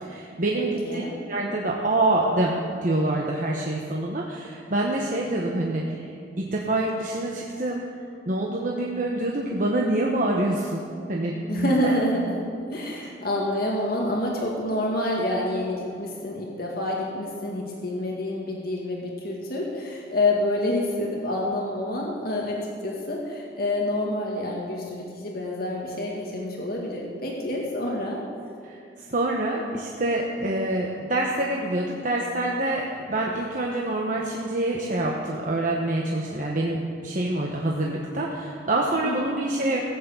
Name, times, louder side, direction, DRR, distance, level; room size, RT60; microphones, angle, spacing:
voice 1, 0.0-1.0 1.3-6.0 6.4-7.8 8.3-10.8 11.1-11.9 28.6-28.8 29.1-39.8, right 1 dB, 45° right, -2 dB, 1.2 m, -26 dB
voice 2, 0.6-1.1 11.5-12.4 12.7-28.2 39.0-39.3, left 1 dB, 55° left, -2 dB, 2.0 m, -28 dB
15.0 x 8.6 x 7.2 m, 2.6 s
head